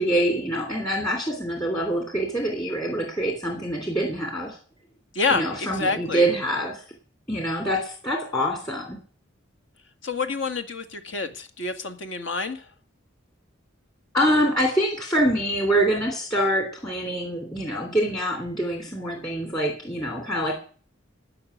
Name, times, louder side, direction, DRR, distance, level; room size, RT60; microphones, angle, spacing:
voice 1, 0.0-4.6 5.3-6.8 7.3-9.0 14.1-20.6, right 1 dB, 20° left, 2 dB, 3.0 m, -25 dB
voice 2, 5.1-6.2 10.0-12.7, left 4 dB, 70° left, 9 dB, 1.9 m, -28 dB
14.5 x 6.0 x 9.8 m, 0.42 s
head